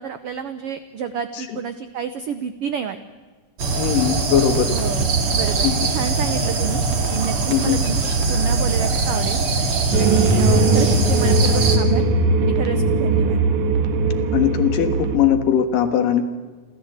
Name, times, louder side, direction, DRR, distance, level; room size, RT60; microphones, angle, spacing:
voice 1, 0.0-3.0 4.7-5.1 5.3-6.8 7.1-9.4 10.0-12.1 12.4-13.4, right 7 dB, 85° right, 10 dB, 1.3 m, -29 dB
sound 1, 3.6-11.8, right 3 dB, 45° right, 2.9 m, -21 dB
voice 2, 3.8-4.7 5.6-5.8 7.5-7.8 14.3-16.3, left 9 dB, 80° left, 8 dB, 3.2 m, -20 dB
sound 2, 9.9-15.2, right 2 dB, 65° right, 3.0 m, -19 dB
28.5 x 13.5 x 8.1 m, 1.4 s
omnidirectional pair, 3.9 m